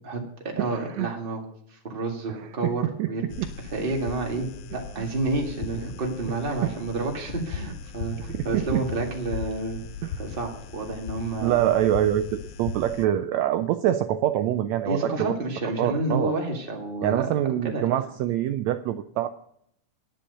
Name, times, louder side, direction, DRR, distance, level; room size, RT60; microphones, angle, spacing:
voice 1, 0.0-3.3 3.6-4.5 4.7-9.8 10.2-11.7 14.9-17.3 17.6-17.9, right 2 dB, 20° right, 1 dB, 1.8 m, -30 dB
voice 2, 0.6-1.1 2.3-2.7 3.0-3.5 4.7-5.0 6.6-6.8 8.2-8.8 10.0-10.2 11.4-15.4 15.8-16.3 17.0-19.3, right 12 dB, 80° right, 9 dB, 1.7 m, -25 dB
sound 1, 3.3-13.1, left 6 dB, 75° left, 1.4 m, -38 dB
10.5 x 10.0 x 6.6 m, 0.72 s
omnidirectional pair, 3.5 m